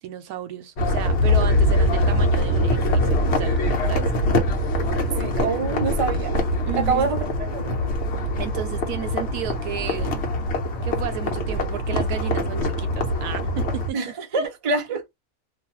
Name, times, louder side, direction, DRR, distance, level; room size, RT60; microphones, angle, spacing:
voice 1, 0.0-4.1 6.6-7.1 8.4-10.3 10.8-14.5, right 10 dB, 90° right, 1.2 m, -33 dB
sound 1, 0.8-13.9, left 1 dB, 55° left, 1.0 m, -23 dB
voice 2, 5.2-6.4 6.8-7.3 7.5-7.9 13.9-15.0, right 4 dB, 35° right, 0.5 m, -25 dB
2.6 x 2.5 x 2.8 m
omnidirectional pair, 1.6 m